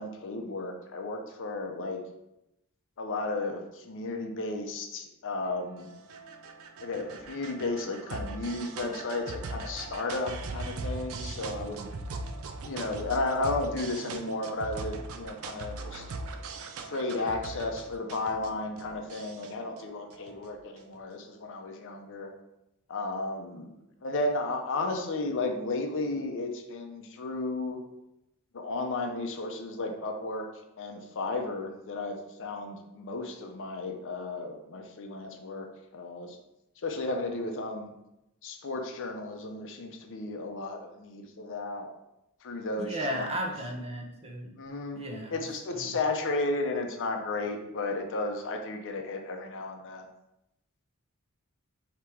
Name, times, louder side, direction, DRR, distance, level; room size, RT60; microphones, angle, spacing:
voice 1, 0.0-2.0 3.0-5.9 6.8-11.9 12.6-16.1 16.8-22.3 22.9-27.8 28.5-30.5 30.8-36.4 36.8-37.9 38.4-41.9 42.4-43.5 44.6-45.0 45.3-50.1, left 2 dB, 60° left, 4 dB, 0.5 m, -34 dB
sound 1, 5.4-21.0, right 3 dB, 65° right, 0.4 m, -40 dB
voice 2, 42.8-44.5 44.9-45.4 45.8-45.9, right 1 dB, 30° right, 0 dB, 0.7 m, -35 dB
4.4 x 2.9 x 3.5 m, 0.88 s
head